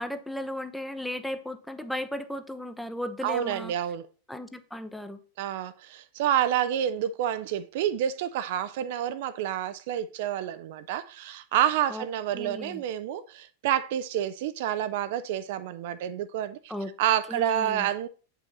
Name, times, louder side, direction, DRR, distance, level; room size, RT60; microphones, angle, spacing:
voice 1, 0.0-3.7 4.3-5.2 11.9-12.0 12.3-12.8 16.7-16.9 17.3-17.9, left 1 dB, ahead, 0.7 m, -35 dB
voice 2, 3.2-4.1 5.4-16.7 17.0-18.1, right 10 dB, 50° right, 0.4 m, -28 dB
8.2 x 5.5 x 3.9 m
figure-of-eight pair, 90°, 0 cm